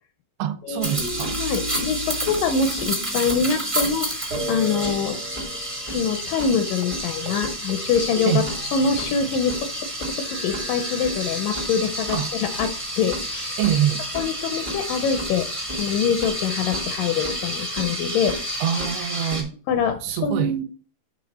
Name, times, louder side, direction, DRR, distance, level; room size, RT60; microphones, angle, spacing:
voice 1, 0.4-1.4 8.3-8.5 12.1-12.3 13.6-14.0 18.6-19.5 20.0-20.6, right 10 dB, 85° right, 2.6 m, -24 dB
sound 1, 0.8-19.4, right 1 dB, 45° right, 0.4 m, -30 dB
sound 2, 1.0-3.9 4.3-6.1 6.4-6.5 6.8-7.0 7.3-7.4 7.7-9.4 10.2-11.7 12.5-13.4, equal, 70° right, 1.2 m, -36 dB
voice 2, 1.4-5.2 5.5-5.6 5.8-8.3 8.6-12.7 13.0-13.6 14.2-15.5 15.8-18.3 19.7-20.6, left 6 dB, 85° left, 1.9 m, -25 dB
7.9 x 3.4 x 4.0 m
omnidirectional pair, 4.5 m